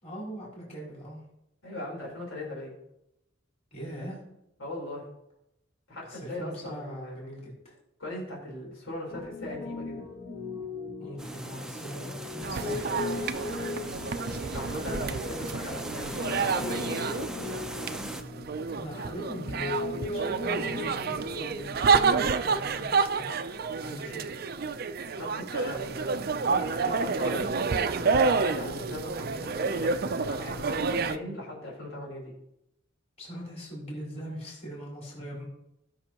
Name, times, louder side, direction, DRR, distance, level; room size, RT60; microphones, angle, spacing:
voice 1, 0.0-1.2 3.7-4.2 6.0-7.7 11.0-13.2 18.7-23.4 23.7-24.4 31.0-31.3 33.2-35.4, equal, 35° left, -5 dB, 4.3 m, -41 dB
voice 2, 1.6-2.7 4.6-5.1 5.9-7.1 8.0-10.0 14.5-17.5 25.2-27.5 28.3-32.3, left 1 dB, 90° left, -3 dB, 4.1 m, -39 dB
Piano, 9.1-22.8, left 3 dB, 50° left, 1.3 m, -39 dB
sound 1, 11.2-18.2, right 1 dB, 5° right, 0.5 m, -40 dB
sound 2, 12.4-31.2, right 5 dB, 50° right, 0.5 m, -29 dB
17.5 x 6.4 x 3.0 m, 0.83 s
head